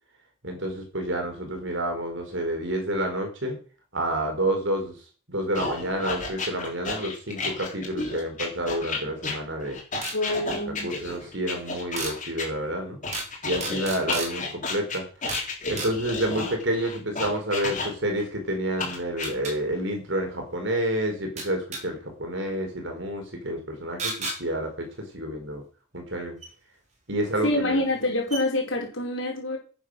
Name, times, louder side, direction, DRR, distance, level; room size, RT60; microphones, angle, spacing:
voice 1, 0.4-3.6 3.9-4.9 5.3-9.8 10.4-10.6 10.8-13.0 13.4-15.0 15.7-24.9 25.1-25.6 25.9-26.4 27.1-27.8, right 1 dB, 65° right, 4.7 m, -29 dB
sound 1, 5.6-12.5 13.0-18.2 18.8-19.3, left 3 dB, 40° left, 3.9 m, -32 dB
sound 2, 10.0-10.2 12.0-12.2 13.1-13.3 13.6-14.3 15.3-15.5 15.8-15.9 18.2-18.3 19.2-19.5 21.4-21.8 24.0-24.4 26.4-26.5 27.5-27.6 28.0-28.1 28.3-28.4, right 3 dB, 35° right, 4.2 m, -32 dB
voice 2, 10.1-10.9 27.4-29.6, left 1 dB, 70° left, 5.1 m, -26 dB
10.0 x 9.6 x 6.5 m
head